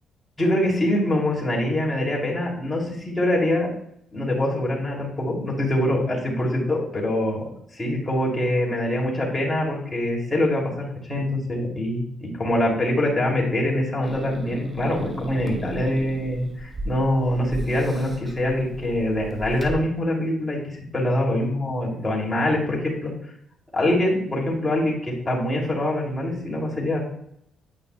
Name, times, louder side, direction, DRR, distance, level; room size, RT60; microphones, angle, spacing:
voice 1, 0.4-3.7 4.1-7.4 7.7-23.1 23.7-27.0, left 1 dB, 20° left, -3 dB, 2.6 m, -24 dB
Growling / Hiss, 14.0-19.7, right 1 dB, 20° right, 1.1 m, -36 dB
9.0 x 5.5 x 2.2 m, 0.74 s
cardioid pair, 90°, 0 cm